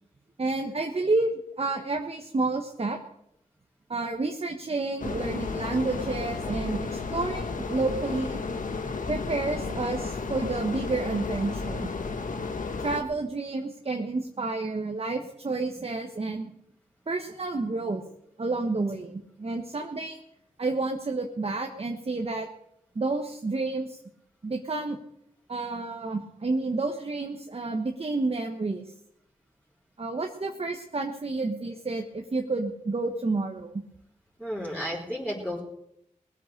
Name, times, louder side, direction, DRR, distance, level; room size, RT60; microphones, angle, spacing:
voice 1, 0.4-3.0 3.9-8.4 9.1-11.9 12.8-16.5 17.1-18.0 18.4-20.2 20.6-22.5 22.9-24.0 24.4-25.0 25.5-28.8 30.0-33.8, right 3 dB, 45° right, 2 dB, 1.3 m, -30 dB
sound 1, 5.0-13.0, left 4 dB, 80° left, 1.3 m, -33 dB
voice 2, 34.4-35.6, equal, 10° left, -7 dB, 4.0 m, -32 dB
20.0 x 8.2 x 6.6 m, 0.78 s
wide cardioid pair, 65°, 13 cm